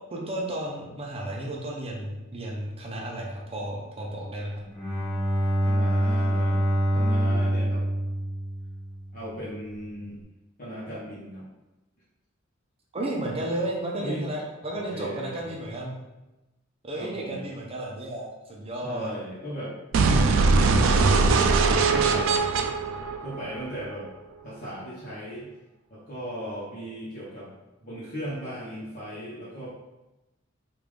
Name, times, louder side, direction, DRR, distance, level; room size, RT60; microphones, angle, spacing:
voice 1, 0.1-4.6 12.9-15.9 16.8-19.1, right 1 dB, 30° right, -2 dB, 0.6 m, -33 dB
Bowed string instrument, 4.7-9.2, equal, 5° left, 1.2 m, -25 dB
voice 2, 5.6-6.6 6.9-7.8 9.1-10.2 10.6-11.5 14.0-14.3 14.9-15.4 17.0-17.4 18.8-19.7 20.1-21.5 21.9-22.5 23.2-24.1 24.4-25.5 25.9-27.5 27.8-29.7, equal, 45° left, -10 dB, 0.9 m, -37 dB
sound 1, 19.9-23.9, right 4 dB, 80° right, 0.3 m, -21 dB
3.5 x 2.5 x 3.2 m, 1.0 s
head